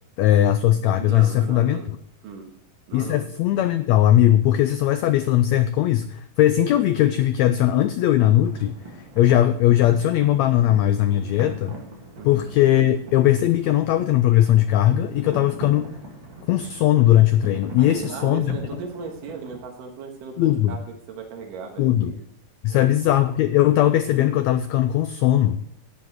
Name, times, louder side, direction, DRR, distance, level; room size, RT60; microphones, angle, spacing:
voice 1, 0.2-1.8 2.9-8.7 9.2-11.7 12.2-15.9 16.5-18.6 20.4-20.8 21.8-22.1 22.6-25.6, left 12 dB, 85° left, 11 dB, 1.6 m, -19 dB
voice 2, 0.7-1.9 2.2-2.5 2.9-3.3 12.2-12.5 17.8-22.2 22.7-23.0, right 5 dB, 90° right, 2 dB, 3.1 m, -37 dB
sound 1, 8.4-19.6, right 2 dB, 40° right, 2.4 m, -41 dB
11.0 x 9.9 x 4.6 m, 0.68 s
omnidirectional pair, 3.8 m